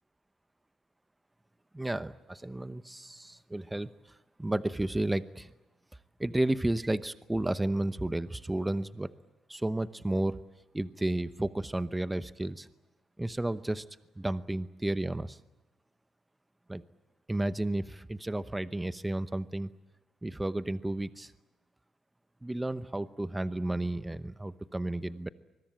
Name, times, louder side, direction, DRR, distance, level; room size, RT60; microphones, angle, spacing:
voice 1, 1.7-3.9 4.4-5.5 6.2-9.1 9.5-10.4 10.7-12.7 13.2-13.8 14.2-15.4 16.7-16.8 17.3-19.7 20.2-21.3 22.4-25.3, right 1 dB, 10° right, 13 dB, 0.9 m, -32 dB
24.5 x 22.5 x 8.8 m, 1.0 s
cardioid pair, 90°, 0 cm